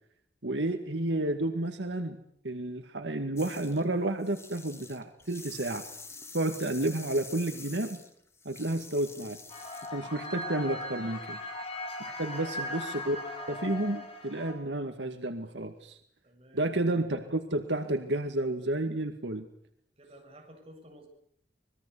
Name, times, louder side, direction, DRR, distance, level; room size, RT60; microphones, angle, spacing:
voice 1, 0.4-2.2 2.4-5.8 6.3-8.0 8.5-9.4 9.9-11.4 12.2-13.2 13.5-16.0 16.5-19.5, right 1 dB, 85° right, 6 dB, 2.0 m, -31 dB
sound 1, 3.4-3.8 4.2-10.0, left 4 dB, 15° left, 2.4 m, -47 dB
sound 2, 9.5-14.5, left 1 dB, 35° left, 6.0 m, -38 dB
voice 2, 16.2-16.8 20.0-21.1, right 1 dB, 35° right, 2 dB, 7.9 m, -52 dB
25.5 x 21.5 x 8.4 m, 0.70 s
head